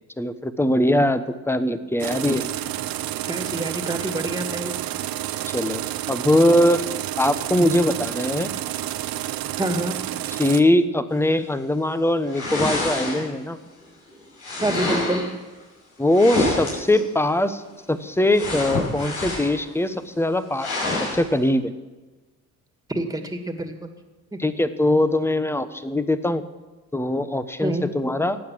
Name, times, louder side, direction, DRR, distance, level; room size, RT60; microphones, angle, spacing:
voice 1, 0.2-2.5 5.5-5.8 6.1-6.8 7.2-8.5 10.3-13.6 16.0-17.6 17.9-20.7 21.1-21.7 24.4-26.4 26.9-28.4, left 1 dB, 5° left, 12 dB, 1.2 m, -21 dB
sound 1, 2.0-10.6, right 13 dB, 70° right, 0.9 m, -30 dB
voice 2, 3.2-4.7 9.6-10.0 14.6-15.2 22.9-23.9 24.3-24.4 27.6-27.9, right 1 dB, 10° right, 6 dB, 2.4 m, -27 dB
sound 2, 12.3-13.5 14.4-15.3 16.1-17.0 18.3-19.6 20.0-20.1 20.6-21.2, left 2 dB, 80° left, 6.3 m, -26 dB
15.0 x 9.3 x 7.7 m, 1.2 s
supercardioid pair, 70°, 36 cm